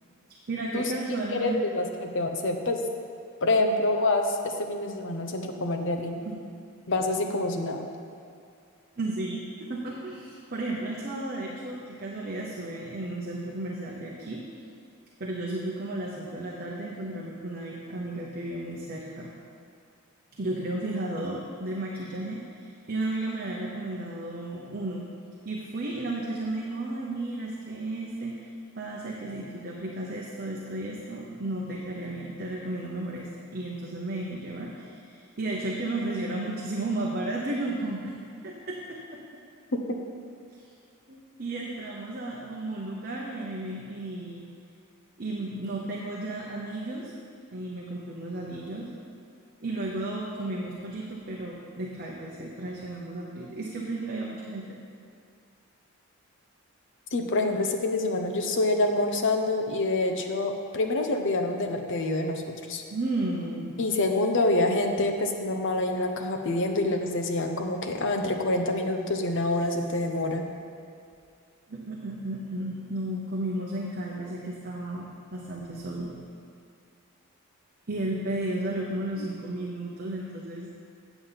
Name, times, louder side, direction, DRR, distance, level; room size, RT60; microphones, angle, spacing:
voice 1, 0.5-1.6 6.2-6.4 9.0-14.4 15.2-19.3 20.4-25.0 25.4-28.5 28.8-38.1 38.4-39.2 41.1-44.4 45.2-47.1 47.5-48.9 49.6-54.8 62.9-63.8 71.7-76.2 77.9-80.7, right 2 dB, 45° right, -3 dB, 0.9 m, -33 dB
voice 2, 1.3-2.8 3.4-6.2 6.9-7.9 57.1-62.8 63.8-70.5, left 2 dB, 55° left, 4 dB, 0.8 m, -26 dB
8.6 x 7.1 x 5.6 m, 2.3 s
head